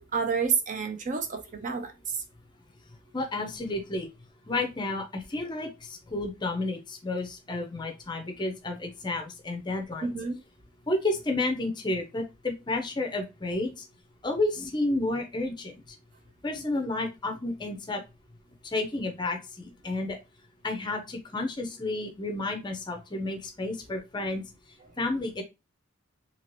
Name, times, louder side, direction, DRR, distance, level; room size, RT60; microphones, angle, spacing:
voice 1, 0.0-1.9 10.0-10.4 23.9-24.0, right 5 dB, 35° right, 0.4 m, -29 dB
voice 2, 3.1-4.1 4.5-10.1 10.9-13.8 14.2-15.8 16.4-18.0 18.7-20.2 20.6-24.4 25.0-25.4, left 2 dB, 20° left, 0.5 m, -31 dB
2.9 x 2.7 x 3.0 m
head